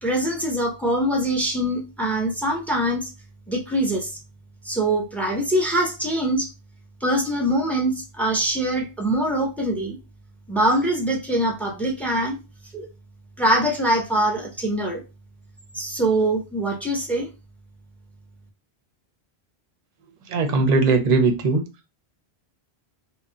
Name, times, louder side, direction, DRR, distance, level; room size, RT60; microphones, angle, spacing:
voice 1, 0.0-3.1 3.5-4.2 4.6-6.5 7.0-10.0 10.5-12.4 12.7-12.9 13.4-15.0 15.7-17.3, right 1 dB, ahead, 0.5 m, -23 dB
voice 2, 20.3-21.6, right 3 dB, 50° right, 0.6 m, -19 dB
2.3 x 2.1 x 3.7 m
omnidirectional pair, 1.1 m